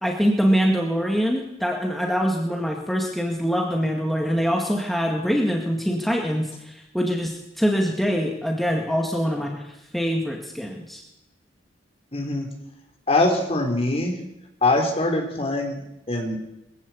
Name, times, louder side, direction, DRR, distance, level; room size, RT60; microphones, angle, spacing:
voice 1, 0.0-11.0, equal, ahead, 1 dB, 2.0 m, -24 dB
voice 2, 12.1-12.5 13.1-14.2 14.6-16.4, left 2 dB, 30° left, 3 dB, 4.0 m, -23 dB
22.0 x 15.5 x 8.5 m, 0.89 s
head